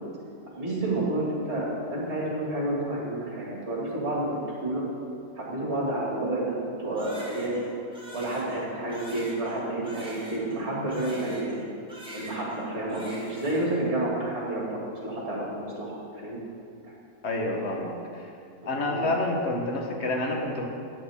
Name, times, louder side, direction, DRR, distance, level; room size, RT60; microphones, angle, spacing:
voice 1, 0.5-4.8 5.4-7.7 8.1-11.6 12.1-16.4 18.9-19.0, right 1 dB, 45° right, -5 dB, 2.6 m, -30 dB
Crying sobbing, 7.0-11.6 11.9-12.6 12.9-13.8, right 1 dB, 5° right, 1.6 m, -44 dB
voice 2, 17.2-18.2 18.6-20.7, left 2 dB, 50° left, 1 dB, 1.4 m, -28 dB
11.5 x 9.2 x 3.7 m, 2.4 s
omnidirectional pair, 1.6 m